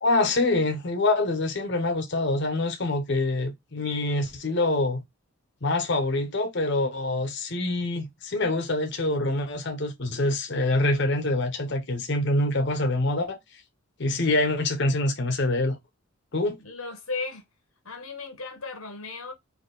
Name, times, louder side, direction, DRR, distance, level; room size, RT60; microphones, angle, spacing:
voice 1, 0.0-5.0 5.6-13.4 14.0-15.8 16.3-16.6, left 2 dB, 55° left, 1.0 m, -25 dB
voice 2, 16.6-17.4 17.8-19.3, left 4 dB, 85° left, 1.5 m, -35 dB
4.4 x 2.9 x 3.9 m
head